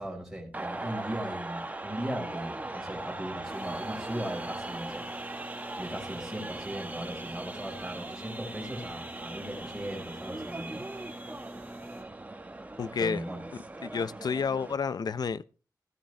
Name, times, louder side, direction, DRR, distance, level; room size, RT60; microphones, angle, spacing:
voice 1, 0.0-5.0 5.8-10.8 13.0-13.4, right 1 dB, 5° right, 4.9 m, -38 dB
sound 1, 0.5-14.7, right 2 dB, 20° right, 1.2 m, -40 dB
sound 2, 3.4-12.0, right 1 dB, 25° left, 4.7 m, -47 dB
voice 2, 12.8-13.2 13.8-15.4, left 5 dB, 70° left, 0.6 m, -30 dB
15.0 x 10.5 x 3.3 m
wide cardioid pair, 95°, 7 cm